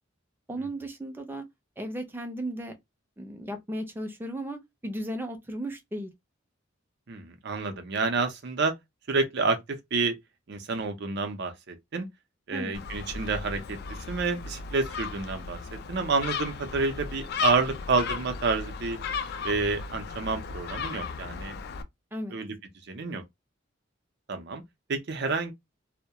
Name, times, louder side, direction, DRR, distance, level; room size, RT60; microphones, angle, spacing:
voice 1, 0.5-1.4 1.8-2.7 3.2-6.1 12.5-12.8 22.1-22.4, right 1 dB, 10° right, 0.5 m, -35 dB
voice 2, 7.1-8.7 9.1-10.1 10.5-12.0 12.5-15.6 15.9-19.0 19.4-21.5 22.3-22.6 22.9-23.2 24.3-24.6 24.9-25.5, right 4 dB, 60° right, 0.6 m, -29 dB
Gull seagull, 12.7-21.8, left 5 dB, 55° left, 0.3 m, -35 dB
2.2 x 2.1 x 2.8 m
head